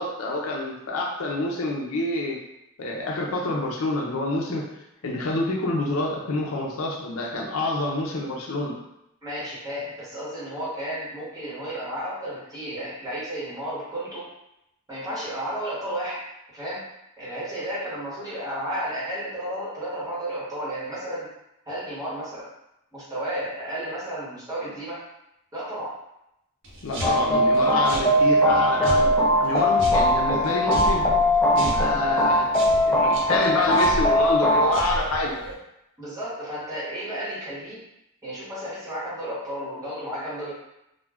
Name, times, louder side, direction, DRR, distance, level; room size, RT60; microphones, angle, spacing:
voice 1, 0.0-2.4 2.8-4.8 5.0-8.8 26.8-31.1 31.5-35.4, left 2 dB, 70° left, -1 dB, 0.5 m, -27 dB
voice 2, 9.2-14.3 14.9-16.2 16.5-16.8 17.2-21.3 21.7-22.5 22.9-25.0 25.5-26.0 26.9-27.2 36.0-37.8 38.2-40.5, right 1 dB, 15° right, -9 dB, 1.1 m, -33 dB
sound 1, 26.6-35.5, equal, 60° right, 0.7 m, -34 dB
sound 2, 27.0-34.8, equal, 10° left, 0.3 m, -20 dB
2.3 x 2.2 x 3.3 m, 0.84 s
head